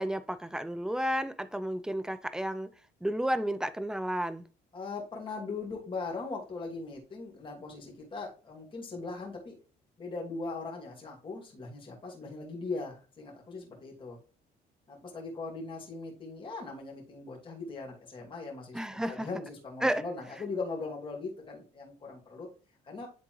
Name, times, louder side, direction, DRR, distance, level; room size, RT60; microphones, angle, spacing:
voice 1, 0.0-2.7 3.0-4.4 18.7-19.3 19.8-20.0, right 1 dB, 5° right, 0.5 m, -32 dB
voice 2, 4.7-9.6 10.0-14.2 14.9-22.5 22.8-23.1, left 3 dB, 30° left, 2.6 m, -39 dB
10.0 x 3.7 x 3.2 m
cardioid pair, 110°, 17 cm